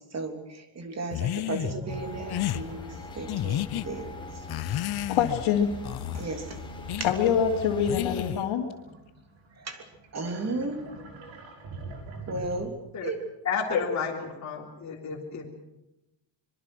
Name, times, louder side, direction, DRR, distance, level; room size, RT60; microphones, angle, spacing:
voice 1, 0.1-4.4 6.1-6.6 9.6-9.8 10.1-10.9 12.3-13.2, right 2 dB, 35° right, 6 dB, 3.2 m, -35 dB
sound 1, 1.1-1.7 2.3-2.6 3.3-3.9 4.5-5.4 5.8-6.3 6.9-7.1 7.9-8.5, left 13 dB, 55° left, 0.8 m, -31 dB
sound 2, 1.6-7.5 8.0-12.6, right 2 dB, 70° right, 5.9 m, -45 dB
sound 3, 1.9-8.3, left 2 dB, 10° left, 4.6 m, -41 dB
voice 2, 5.1-5.7 7.0-8.6, left 8 dB, 75° left, -4 dB, 3.0 m, -24 dB
voice 3, 13.4-15.5, left 6 dB, 35° left, -3 dB, 3.4 m, -31 dB
25.0 x 23.0 x 6.2 m, 0.95 s
cardioid pair, 150°, 47 cm